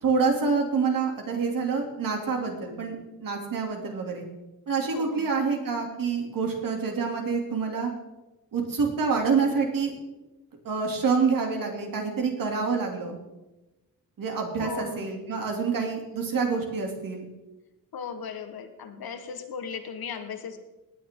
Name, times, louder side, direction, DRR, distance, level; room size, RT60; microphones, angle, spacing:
voice 1, 0.0-4.3 4.7-7.9 8.5-9.9 10.6-13.2 14.2-17.3, right 5 dB, 65° right, 1 dB, 2.8 m, -27 dB
voice 2, 4.9-5.3 14.6-15.1 17.9-20.6, left 6 dB, 75° left, 8 dB, 1.4 m, -37 dB
19.0 x 9.5 x 3.8 m, 1.0 s
wide cardioid pair, 160°, 37 cm